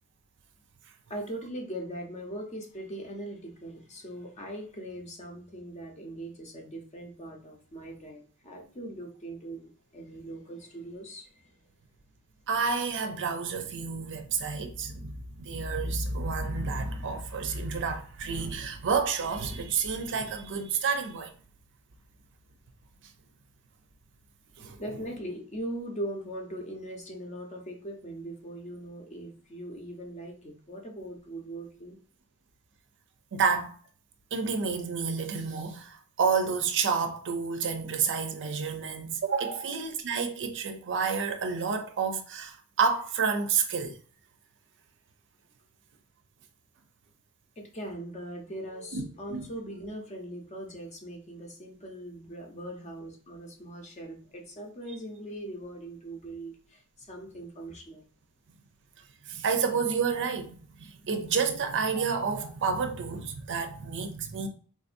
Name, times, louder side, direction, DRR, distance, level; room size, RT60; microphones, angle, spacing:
voice 1, 1.1-11.6 24.8-32.0 47.6-58.0, right 1 dB, 30° left, 0.7 m, -40 dB
voice 2, 12.5-21.3 24.6-24.8 33.3-33.7 34.3-44.0 48.9-49.0 49.3-49.5 59.3-64.5, right 5 dB, 55° right, 0.5 m, -30 dB
3.7 x 2.6 x 2.5 m
head